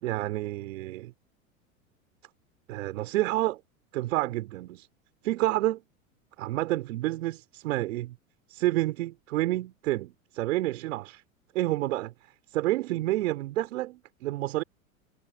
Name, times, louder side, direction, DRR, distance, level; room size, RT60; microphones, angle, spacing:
voice 1, 0.0-1.1 2.7-3.6 3.9-4.9 5.2-5.8 6.4-8.1 8.5-11.2 11.5-14.6, right 16 dB, 60° right, 4.2 m, -29 dB
figure-of-eight pair, 85°, 42 cm